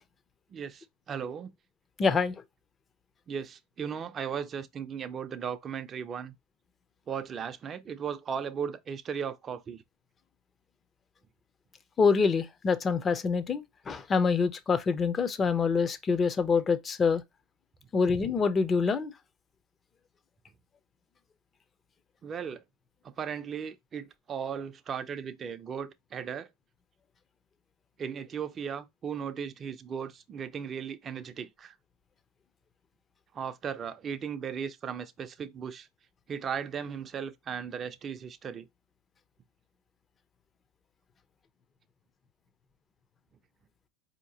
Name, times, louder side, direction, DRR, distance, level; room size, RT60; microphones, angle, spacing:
voice 1, 0.5-1.5 3.3-6.3 7.1-9.8 22.2-22.6 23.0-26.5 28.0-31.7 33.3-35.9 36.3-38.7, right 7 dB, 30° right, 0.6 m, -36 dB
voice 2, 2.0-2.3 12.0-17.2 17.9-19.1, left 5 dB, 25° left, 0.7 m, -26 dB
4.4 x 2.9 x 2.8 m
supercardioid pair, 105°, 0 cm